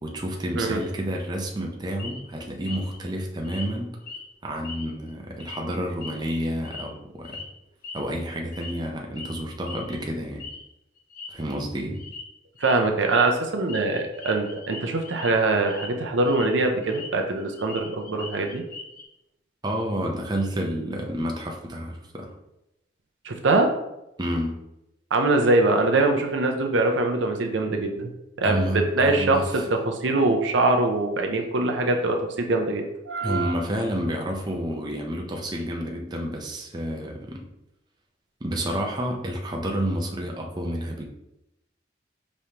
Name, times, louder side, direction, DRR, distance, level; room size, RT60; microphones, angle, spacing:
voice 1, 0.0-3.9 4.4-7.4 7.9-10.5 11.3-12.0 19.6-22.3 24.2-24.6 28.4-29.7 33.2-37.4 38.4-41.0, equal, 20° right, 1 dB, 0.5 m, -29 dB
sound 1, 2.0-2.2 2.7-3.0 3.4-3.7 4.0-4.2 4.6-5.1 5.4-5.6 6.0-6.9 7.2-7.4 7.8-8.1 8.5-8.9 9.2-9.4 9.7-10.0 10.4-10.6 11.0-11.3 11.9-12.2 12.6-12.7 13.0-13.2 13.7-15.3 15.6-15.9 16.2-17.1 17.4-19.0, left 4 dB, 50° left, 0.7 m, -40 dB
voice 2, 12.6-18.6 23.3-23.7 25.1-28.1 28.4-28.6 29.0-33.6, right 2 dB, 80° right, 4 dB, 0.6 m, -23 dB
5.0 x 3.1 x 2.8 m, 0.88 s
head